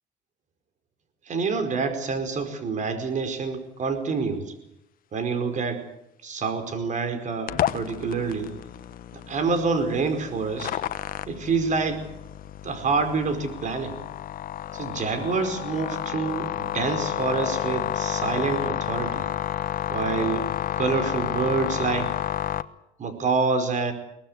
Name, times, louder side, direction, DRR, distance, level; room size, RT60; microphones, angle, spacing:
voice 1, 1.3-4.5 5.1-5.8 6.2-8.5 9.3-10.7 11.3-12.0 12.6-14.0 14.7-19.3 19.9-20.5 20.8-22.1 23.0-23.9, right 4 dB, 45° right, 9 dB, 4.9 m, -27 dB
sound 1, 7.5-22.6, left 11 dB, 55° left, 1.1 m, -30 dB
23.0 x 19.0 x 8.1 m, 0.86 s
cardioid pair, 110°, 17 cm